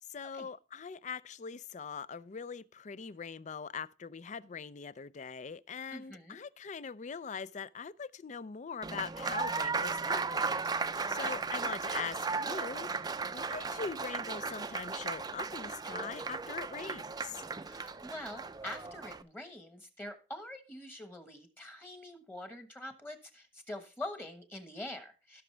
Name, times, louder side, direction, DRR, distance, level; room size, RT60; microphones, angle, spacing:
voice 1, 0.1-12.9 13.3-17.4, left 6 dB, 45° left, 0.4 m, -42 dB
voice 2, 5.9-6.4 10.9-11.4 17.6-25.4, left 1 dB, 10° left, 1.2 m, -45 dB
Applause, 8.8-19.2, right 4 dB, 25° right, 0.5 m, -36 dB
17.0 x 6.1 x 3.3 m
head